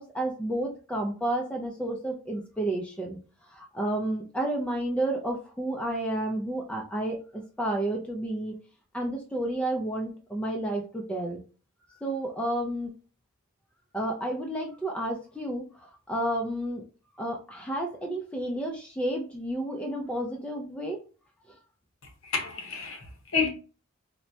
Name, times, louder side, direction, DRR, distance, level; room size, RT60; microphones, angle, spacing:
voice 1, 0.0-3.2 3.5-8.6 8.9-11.4 12.0-12.9 13.9-16.8 17.2-21.0, right 1 dB, 5° left, 0.4 m, -31 dB
voice 2, 22.2-23.5, left 5 dB, 60° left, 0.8 m, -29 dB
4.3 x 2.1 x 2.6 m
head